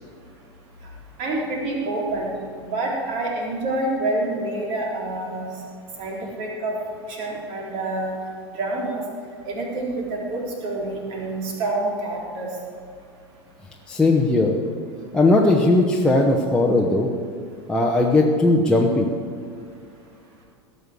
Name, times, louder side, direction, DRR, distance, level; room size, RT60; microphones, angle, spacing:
voice 1, 1.2-2.3 2.6-5.5 6.0-6.7 7.1-8.1 8.5-9.0 9.4-12.5, right 2 dB, 45° right, -2 dB, 3.9 m, -27 dB
voice 2, 13.9-14.6 15.1-17.1 17.7-19.1, left 2 dB, 5° left, -2 dB, 1.2 m, -18 dB
17.0 x 6.9 x 7.9 m, 2.3 s
figure-of-eight pair, 85°, 14 cm